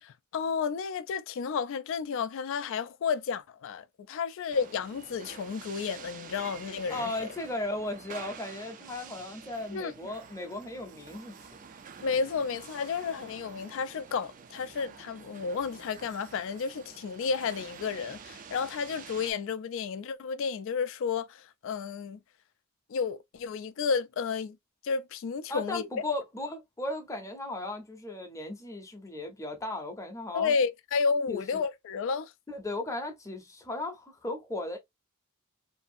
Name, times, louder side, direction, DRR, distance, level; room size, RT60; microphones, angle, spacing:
voice 1, 0.0-7.1 9.7-9.9 12.0-22.2 22.9-24.6 24.8-25.9 30.3-32.3, left 5 dB, 60° left, 0.3 m, -32 dB
sound 1, 4.5-19.3, right 6 dB, 40° right, 0.4 m, -48 dB
voice 2, 6.9-11.4 25.5-30.5 31.3-31.6 32.5-34.8, left 2 dB, 15° left, 0.6 m, -36 dB
2.6 x 2.4 x 2.4 m
head